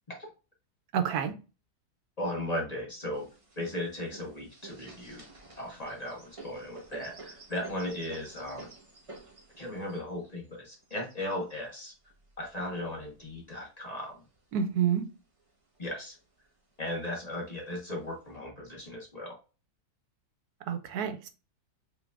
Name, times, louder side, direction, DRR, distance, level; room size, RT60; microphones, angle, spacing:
voice 1, 0.9-1.3 14.5-15.1 20.7-21.3, right 8 dB, 90° right, 1.3 m, -28 dB
voice 2, 2.2-3.3 3.6-5.3 5.6-8.7 9.6-11.9 12.4-14.2 15.8-16.2 16.8-19.4, left 1 dB, 30° left, 1.2 m, -36 dB
sound 1, 3.1-13.4 14.0-15.0 15.4-15.5 15.8-16.5 17.2-17.3 17.9-18.4, right 3 dB, 25° right, 0.9 m, -51 dB
5.1 x 3.4 x 2.4 m
omnidirectional pair, 1.6 m